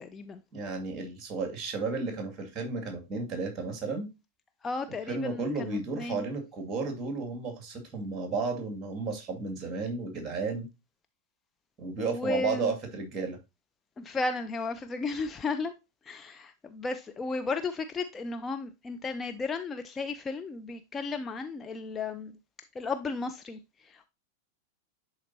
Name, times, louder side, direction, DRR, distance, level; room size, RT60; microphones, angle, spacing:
voice 1, 0.0-0.4 4.6-6.3 12.0-12.7 14.0-15.7 16.1-22.3 22.8-24.1, left 3 dB, 20° left, 0.5 m, -34 dB
voice 2, 0.5-4.1 5.1-10.7 11.8-13.4, right 4 dB, 25° right, 2.1 m, -33 dB
11.0 x 4.1 x 2.7 m
figure-of-eight pair, 90°, 0 cm